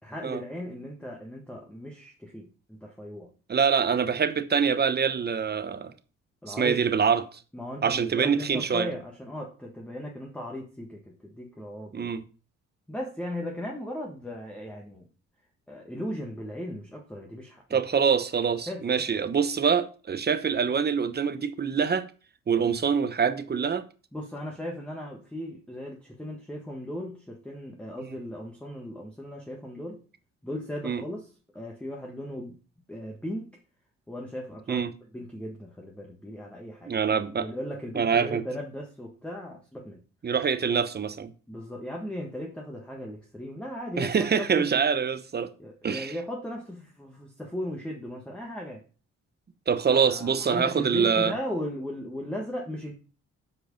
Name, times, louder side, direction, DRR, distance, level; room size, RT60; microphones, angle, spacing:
voice 1, 0.0-3.3 6.4-6.8 7.5-12.1 12.9-15.1 15.7-17.8 18.7-19.0 22.6-22.8 24.1-30.0 30.4-32.6 32.9-33.6 34.1-36.9 37.4-40.0 41.5-44.8 45.6-48.8 49.9-52.9, equal, 5° left, 1.5 m, -37 dB
voice 2, 3.5-5.9 6.5-7.4 7.8-8.9 11.9-12.2 17.7-22.1 22.5-23.8 30.8-31.0 34.7-34.9 36.9-37.5 37.9-38.4 40.2-41.3 44.0-45.5 45.8-46.1 49.7-51.3, right 6 dB, 35° right, 0.9 m, -25 dB
7.8 x 4.8 x 5.2 m
cardioid pair, 90°, 30 cm